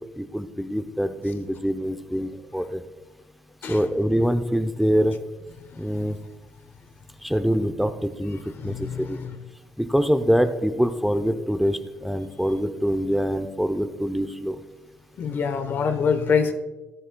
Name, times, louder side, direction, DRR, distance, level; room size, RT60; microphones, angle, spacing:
voice 1, 0.2-2.8 3.7-5.2 5.8-6.2 7.2-9.2 9.8-14.6, equal, ahead, 8 dB, 0.6 m, -24 dB
voice 2, 8.6-9.4 15.2-16.5, left 6 dB, 55° left, 9 dB, 1.0 m, -25 dB
14.0 x 10.0 x 2.3 m, 1.1 s
supercardioid pair, 70°, 4 cm